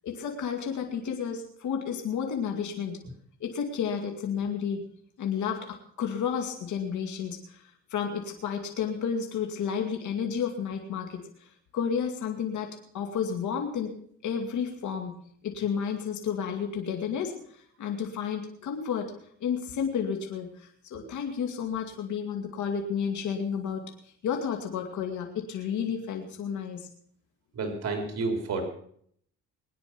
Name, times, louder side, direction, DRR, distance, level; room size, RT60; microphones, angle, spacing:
voice 1, 0.0-3.0 3.4-4.8 5.2-7.6 7.9-11.2 11.7-12.7 12.9-13.9 14.2-15.1 15.4-19.1 19.4-23.9 24.2-26.9, left 7 dB, 75° left, 3 dB, 2.3 m, -31 dB
voice 2, 27.6-28.6, right 3 dB, 55° right, 4 dB, 3.8 m, -30 dB
21.0 x 9.8 x 6.0 m, 0.64 s
cardioid pair, 90°, 30 cm